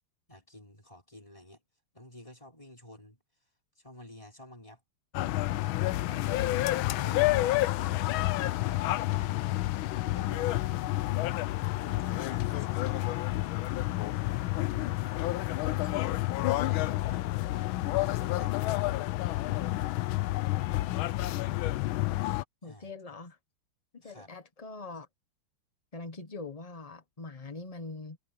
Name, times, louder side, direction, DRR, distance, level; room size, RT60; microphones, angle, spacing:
voice 1, 0.3-1.6 1.9-3.2 3.8-4.8 5.5-6.5 6.9-7.7 8.2-11.5 11.8-13.2 15.8-16.1 16.4-17.3 18.0-18.5 22.6-22.9 24.0-24.3, left 1 dB, 15° left, 6.0 m, -51 dB
sound 1, 5.1-22.4, left 17 dB, 75° left, 1.4 m, -29 dB
voice 2, 22.6-23.4 23.9-25.1 25.9-28.2, left 3 dB, 35° left, 0.6 m, -43 dB
omnidirectional pair, 2.4 m